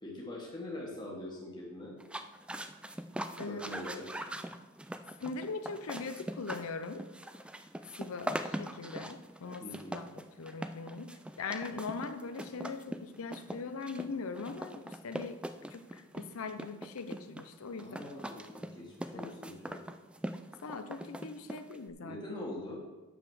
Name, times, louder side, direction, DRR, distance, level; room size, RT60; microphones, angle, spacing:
voice 1, 0.0-1.9 3.4-4.1 9.6-10.0 17.8-19.8 22.0-22.8, left 1 dB, 20° left, -3 dB, 1.5 m, -43 dB
sound 1, 2.0-21.9, right 1 dB, 5° right, 0.3 m, -42 dB
voice 2, 5.2-7.0 8.0-9.6 9.9-11.1 11.4-15.4 15.7-18.0 19.1-19.3 20.6-22.2, left 4 dB, 90° left, 9 dB, 0.6 m, -41 dB
7.0 x 6.1 x 6.2 m, 1.1 s
head